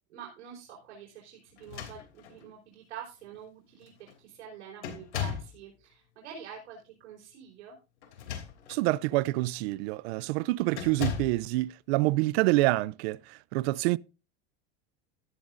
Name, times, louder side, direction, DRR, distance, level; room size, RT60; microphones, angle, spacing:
voice 1, 0.1-7.8, right 8 dB, 85° right, 4.7 m, -47 dB
sound 1, 1.6-2.5 3.3-3.4 3.8-4.2 4.8-5.6 8.0-8.9 9.4-9.6 10.7-11.4, left 8 dB, 90° left, 3.0 m, -37 dB
voice 2, 8.7-14.0, right 19 dB, 70° right, 0.6 m, -27 dB
13.5 x 11.5 x 2.6 m
supercardioid pair, 115°, 33 cm